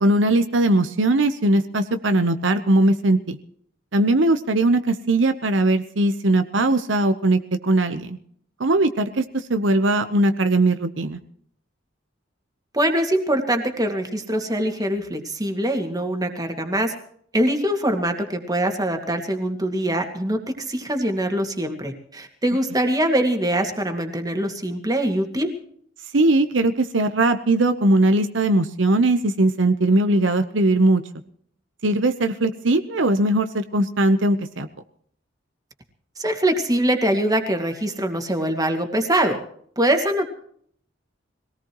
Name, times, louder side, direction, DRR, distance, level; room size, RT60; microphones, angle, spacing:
voice 1, 0.0-3.4 3.9-8.2 8.6-11.2 26.1-31.0 31.8-34.7, right 2 dB, 75° right, 9 dB, 1.0 m, -20 dB
voice 2, 12.7-16.9 17.3-25.5 36.2-39.4 39.8-40.3, right 1 dB, 20° right, 4 dB, 2.2 m, -23 dB
23.0 x 18.0 x 3.1 m, 0.63 s
head